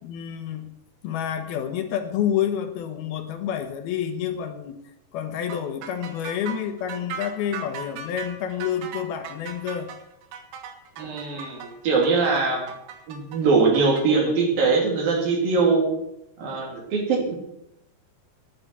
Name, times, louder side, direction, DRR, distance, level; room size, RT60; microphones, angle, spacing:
voice 1, 0.0-0.7 1.0-4.8 5.1-9.9, left 9 dB, 70° left, 6 dB, 2.8 m, -28 dB
sound 1, 5.5-14.1, right 7 dB, 90° right, 3.6 m, -38 dB
voice 2, 11.0-12.7 13.1-15.9 16.4-17.3, right 4 dB, 60° right, 1 dB, 4.5 m, -22 dB
10.5 x 10.0 x 9.3 m, 0.84 s
omnidirectional pair, 4.8 m